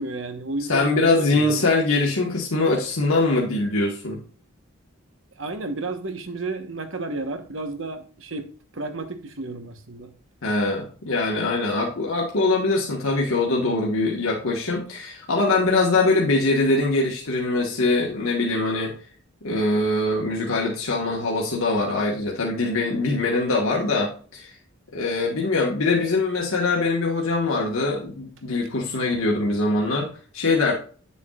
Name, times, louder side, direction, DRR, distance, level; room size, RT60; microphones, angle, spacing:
voice 1, 0.0-1.7 5.3-10.1, right 2 dB, 70° right, 1.1 m, -32 dB
voice 2, 0.7-4.2 10.4-18.9 19.4-24.5 24.9-30.7, left 3 dB, 85° left, 1.5 m, -23 dB
8.9 x 6.9 x 2.4 m
head